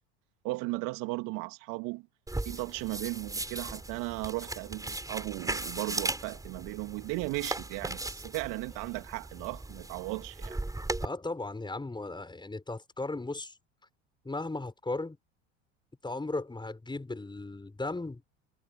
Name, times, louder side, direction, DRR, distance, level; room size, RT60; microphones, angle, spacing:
voice 1, 0.4-2.1 2.4-10.6, right 24 dB, 65° right, 3.2 m, -36 dB
sound 1, 2.3-11.0, right 2 dB, 10° right, 6.5 m, -37 dB
voice 2, 11.0-13.5 14.2-15.2 16.0-18.2, left 2 dB, 15° left, 7.1 m, -36 dB
hypercardioid pair, 75°, 35 cm